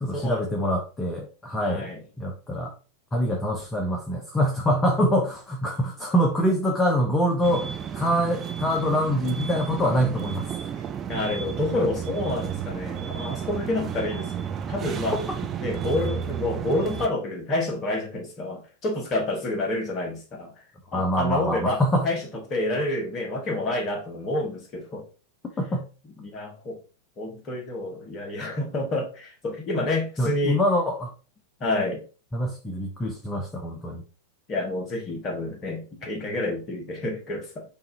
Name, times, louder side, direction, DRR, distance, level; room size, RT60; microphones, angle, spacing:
voice 1, 0.0-1.9 2.2-2.7 3.1-7.7 7.9-10.5 20.9-22.1 25.6-25.8 30.2-31.1 32.3-34.0, equal, 15° left, 3 dB, 0.6 m, -25 dB
voice 2, 1.6-2.0 11.1-15.2 15.6-20.5 20.9-25.0 26.2-26.8 27.2-30.6 31.6-32.0 34.5-37.6, left 2 dB, 30° left, 2 dB, 1.2 m, -29 dB
sound 1, 7.4-17.1, right 8 dB, 25° right, 0.4 m, -32 dB
5.5 x 2.6 x 2.7 m, 0.34 s
figure-of-eight pair, 90°, 0 cm